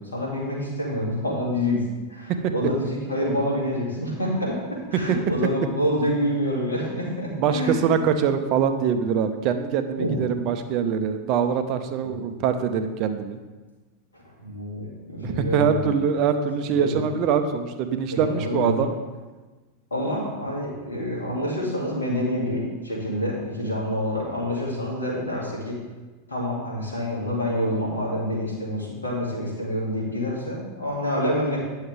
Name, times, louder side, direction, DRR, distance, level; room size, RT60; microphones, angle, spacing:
voice 1, 0.0-1.8 2.1-7.7 10.0-10.2 14.1-15.9 16.8-16.9 18.1-18.9 19.9-25.8 26.3-31.6, equal, 90° left, -4 dB, 2.2 m, -27 dB
voice 2, 7.3-13.4 15.2-18.9, right 7 dB, 45° right, 8 dB, 0.7 m, -23 dB
9.5 x 6.5 x 3.3 m, 1.3 s
figure-of-eight pair, 90°, 0 cm